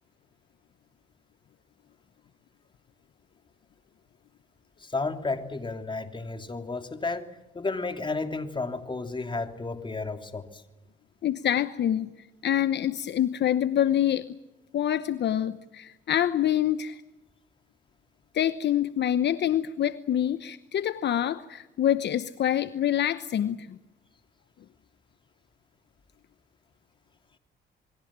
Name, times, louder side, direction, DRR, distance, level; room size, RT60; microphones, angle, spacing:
voice 1, 4.8-7.3 7.5-10.6, left 3 dB, 25° left, 6 dB, 3.1 m, -32 dB
voice 2, 11.2-12.1 12.4-14.4 14.7-17.0 18.3-23.8, left 10 dB, 60° left, 13 dB, 1.0 m, -26 dB
28.0 x 22.0 x 7.5 m, 1.0 s
cardioid pair, 90°, 20 cm